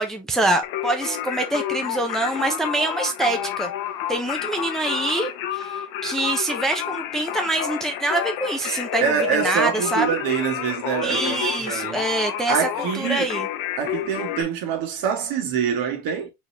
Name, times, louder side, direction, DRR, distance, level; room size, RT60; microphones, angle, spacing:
voice 1, 0.0-3.7 4.1-10.2 11.0-12.7 12.9-13.5, right 2 dB, ahead, 0.5 m, -25 dB
Singing, 0.6-14.4, left 10 dB, 70° left, 0.8 m, -30 dB
voice 2, 9.0-12.0 12.5-13.3 13.8-16.3, right 7 dB, 70° right, 1.6 m, -25 dB
4.3 x 3.4 x 2.8 m
cardioid pair, 155°, 36 cm